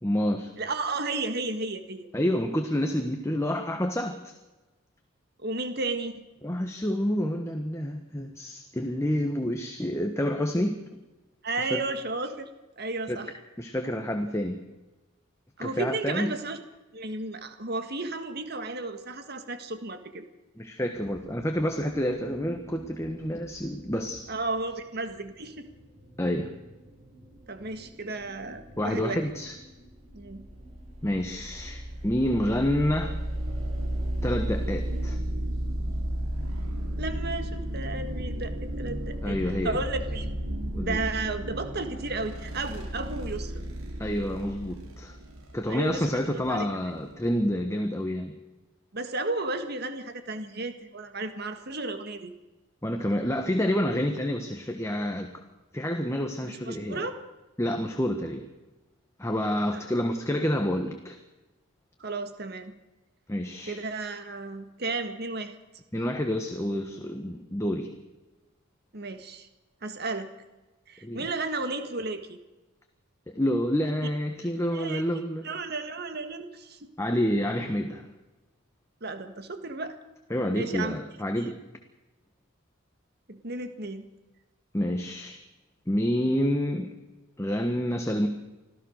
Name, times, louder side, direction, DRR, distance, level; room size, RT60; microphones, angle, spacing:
voice 1, 0.0-0.5 2.1-4.3 6.4-10.8 11.7-11.8 13.1-13.2 13.6-14.6 15.6-16.3 20.6-24.3 26.2-26.5 28.8-29.5 31.0-33.2 34.2-35.2 39.2-39.8 40.7-41.0 44.0-45.2 45.5-48.3 52.8-55.3 55.7-57.0 57.6-58.5 59.2-61.2 63.3-63.8 65.9-68.0 71.0-71.3 73.3-75.5 77.0-78.1 80.3-81.6 84.7-85.4 85.9-86.9 87.4-88.3, equal, 15° left, 4 dB, 1.3 m, -28 dB
voice 2, 0.6-2.1 5.4-6.2 11.4-12.5 12.8-13.3 15.6-16.6 16.9-20.3 24.3-25.7 27.5-29.2 30.1-30.5 37.0-39.4 39.6-40.3 40.8-43.5 45.7-46.7 48.9-52.3 56.4-57.1 59.7-59.8 62.0-62.8 63.7-65.5 68.9-69.5 69.8-70.3 70.9-72.4 74.7-75.0 75.4-76.9 79.0-80.0 80.6-81.0 81.4-81.5 83.3-84.1, right 3 dB, 50° right, 8 dB, 1.7 m, -33 dB
sound 1, 21.0-35.1, right 2 dB, 30° right, 7.7 m, -51 dB
sound 2, 30.1-47.5, right 1 dB, 90° right, 4.0 m, -33 dB
26.0 x 15.5 x 6.5 m, 1.1 s
head